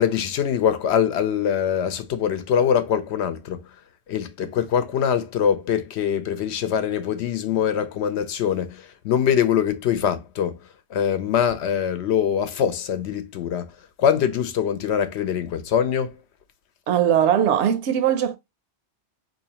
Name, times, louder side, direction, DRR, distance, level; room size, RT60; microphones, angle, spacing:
voice 1, 0.0-3.6 4.1-10.6 10.9-13.7 14.0-16.1, left 8 dB, 75° left, 0.8 m, -23 dB
voice 2, 16.9-18.4, right 9 dB, 80° right, 0.9 m, -20 dB
3.9 x 2.7 x 2.8 m
omnidirectional pair, 1.2 m